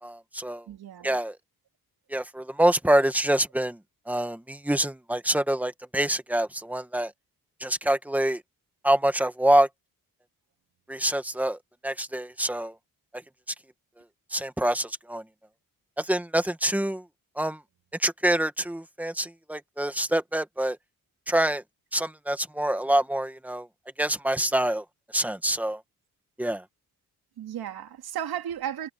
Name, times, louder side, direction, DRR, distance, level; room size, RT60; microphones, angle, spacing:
voice 1, 0.0-0.6 1.0-1.4 2.1-3.8 4.1-7.1 7.6-8.4 8.8-9.7 10.9-12.7 14.3-15.2 16.0-17.0 17.4-17.6 18.0-20.8 21.3-21.6 21.9-23.7 24.0-24.8 25.1-25.8 26.4-26.6, right 1 dB, 5° right, 1.5 m, -26 dB
voice 2, 0.7-1.2 27.4-28.9, right 10 dB, 85° right, 2.8 m, -34 dB
wide cardioid pair, 135°, 36 cm